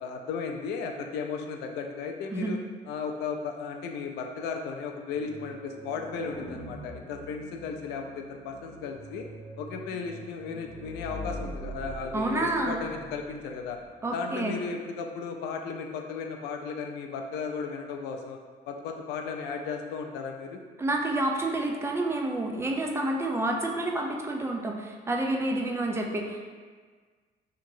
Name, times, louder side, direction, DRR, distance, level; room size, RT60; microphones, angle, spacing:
voice 1, 0.0-2.6 2.9-9.3 9.6-13.8 14.1-18.4 18.7-20.6, left 5 dB, 85° left, 4 dB, 0.4 m, -35 dB
sound 1, 5.1-13.9, right 1 dB, 45° right, 1.5 m, -43 dB
voice 2, 12.1-12.8 14.0-14.6 20.8-26.4, right 2 dB, 15° right, 1 dB, 0.3 m, -29 dB
2.9 x 2.8 x 2.6 m, 1.5 s
cardioid pair, 110°, 17 cm